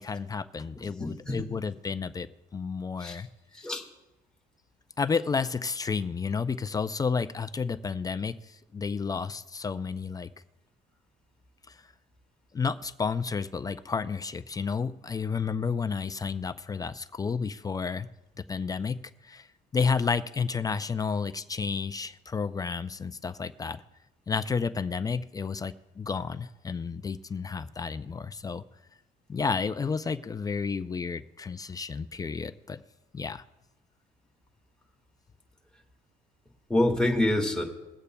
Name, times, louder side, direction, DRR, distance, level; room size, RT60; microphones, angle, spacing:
voice 1, 0.0-2.3 2.5-3.3 5.0-10.3 11.7-11.8 12.5-18.1 18.4-19.5 19.7-23.8 24.3-28.6 29.3-32.8 33.1-33.4, left 5 dB, 20° left, 11 dB, 0.4 m, -31 dB
voice 2, 0.7-1.5 3.0-3.2 3.5-3.8 36.7-37.6, left 1 dB, 5° left, 0 dB, 1.8 m, -27 dB
22.5 x 8.2 x 2.2 m, 0.99 s
cardioid pair, 110°, 17 cm